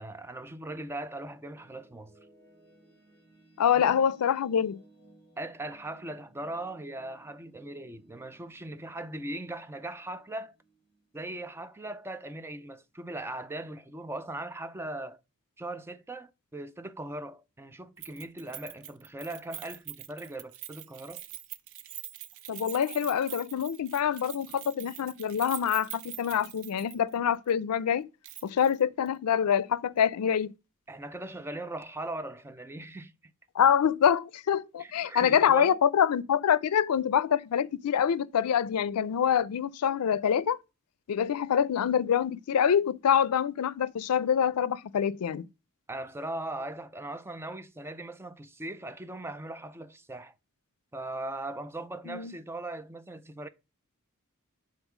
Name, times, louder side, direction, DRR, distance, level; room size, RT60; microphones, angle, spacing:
voice 1, 0.0-2.1 3.7-3.9 5.4-10.5 11.1-15.2 15.6-21.2 30.9-33.1 34.8-35.8 45.9-50.3 50.9-53.5, right 1 dB, 10° right, 0.4 m, -39 dB
sound 1, 1.0-12.0, right 3 dB, 10° left, 3.6 m, -61 dB
voice 2, 3.6-4.8 22.5-28.1 28.4-30.5 33.6-40.6 41.1-45.5 52.1-52.3, left 8 dB, 90° left, 0.4 m, -26 dB
Keys jangling, 18.0-27.2 27.5-27.6 28.2-28.8 29.1-29.2, right 13 dB, 65° right, 0.5 m, -44 dB
5.5 x 3.8 x 5.9 m
head